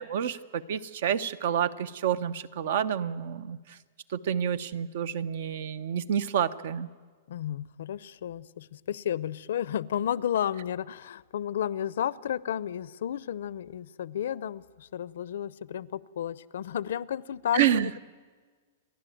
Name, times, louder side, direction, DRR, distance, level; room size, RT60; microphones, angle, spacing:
voice 1, 0.0-3.8 4.1-6.9 17.5-17.9, right 9 dB, 60° right, 16 dB, 0.9 m, -29 dB
voice 2, 7.3-18.0, left 10 dB, 75° left, 20 dB, 0.6 m, -32 dB
29.5 x 11.5 x 9.2 m, 1.5 s
supercardioid pair, 160°, 0 cm